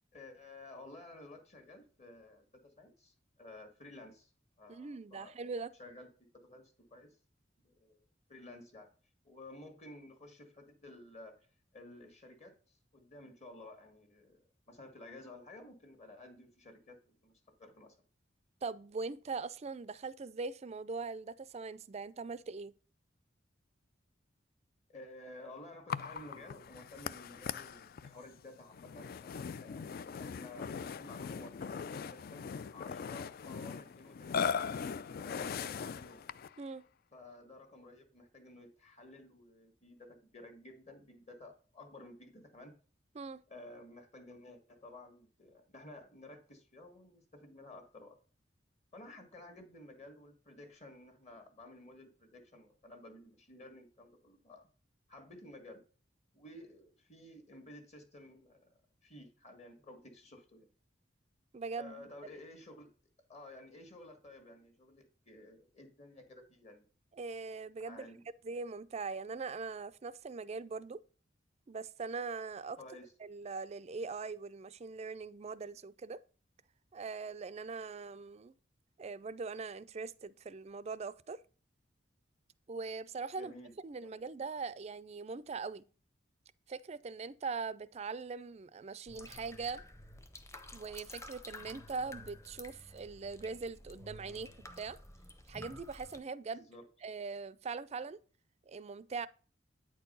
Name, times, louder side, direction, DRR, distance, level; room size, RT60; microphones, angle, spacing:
voice 1, 0.1-4.3 4.6-5.5 5.8-6.1 6.3-7.2 7.6-8.0 8.3-8.9 9.2-11.4 11.7-17.3 17.6-17.9 24.9-29.8 30.2-30.7 31.0-34.6 35.2-36.2 37.1-42.7 43.5-48.2 48.9-54.7 55.1-55.8 56.3-58.7 59.0-60.7 61.8-62.9 63.3-66.9 67.8-68.2 72.8-73.1 83.3-83.7 84.0-84.1 96.5-96.8, left 2 dB, 35° left, 1.5 m, -53 dB
voice 2, 4.7-5.7 18.6-22.7 36.6-36.8 43.1-43.4 61.5-62.1 67.1-68.1 68.4-71.0 71.7-72.8 73.2-76.2 76.9-78.5 79.0-81.4 82.7-83.5 83.8-85.8 86.7-89.8 90.7-95.0 95.5-96.7 97.0-98.2 98.7-99.3, right 4 dB, 35° right, 0.4 m, -41 dB
Burping eructation, 25.9-36.6, left 6 dB, 55° left, 0.4 m, -40 dB
sound 1, 89.1-96.2, left 1 dB, 15° left, 0.8 m, -51 dB
9.0 x 4.5 x 5.4 m
head